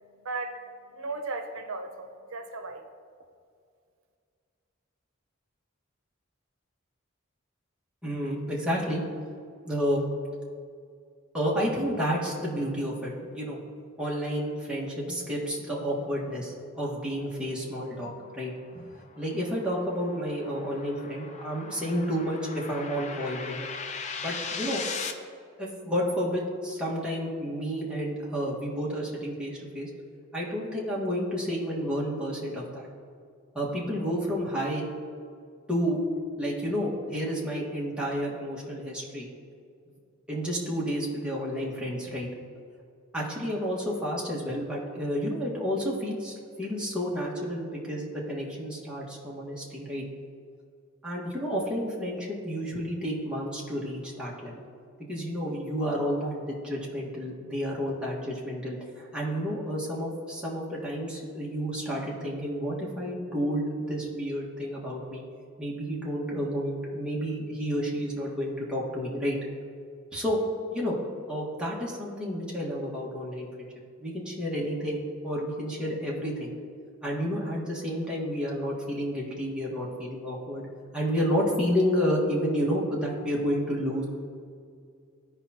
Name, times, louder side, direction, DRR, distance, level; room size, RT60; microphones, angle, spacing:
voice 1, 0.0-2.9, right 3 dB, 85° right, 6 dB, 0.7 m, -37 dB
voice 2, 8.0-9.0 9.6-10.0 11.3-13.6 14.0-18.9 19.2-23.7 24.2-24.8 25.6-29.9 30.3-32.9 33.5-34.9 35.7-36.0 36.4-39.3 40.3-42.3 43.1-50.0 51.0-54.6 55.1-65.2 65.6-69.4 70.1-70.4 70.7-71.0 71.3-73.7 74.0-76.5 77.0-80.7 80.9-84.0, equal, 5° right, -6 dB, 1.7 m, -30 dB
sound 1, 18.2-25.1, left 5 dB, 35° left, 0.5 m, -39 dB
15.0 x 5.0 x 2.9 m, 2.3 s
head